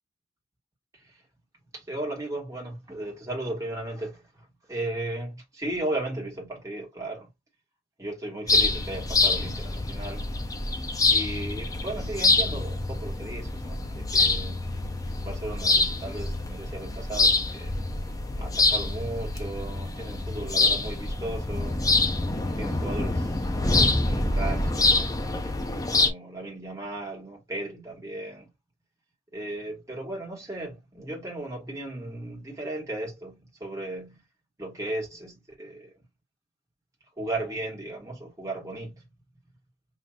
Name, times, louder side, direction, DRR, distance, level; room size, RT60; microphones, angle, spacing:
voice 1, 1.7-4.3 4.7-7.3 8.0-10.2 11.1-14.7 15.2-17.7 18.4-21.8 22.6-23.3 23.8-25.2 25.9-28.5 29.3-34.2 34.6-35.9 37.2-39.0, right 1 dB, 20° right, 1.4 m, -35 dB
sound 1, 8.5-26.1, left 3 dB, 20° left, 0.5 m, -26 dB
5.7 x 2.6 x 2.3 m
head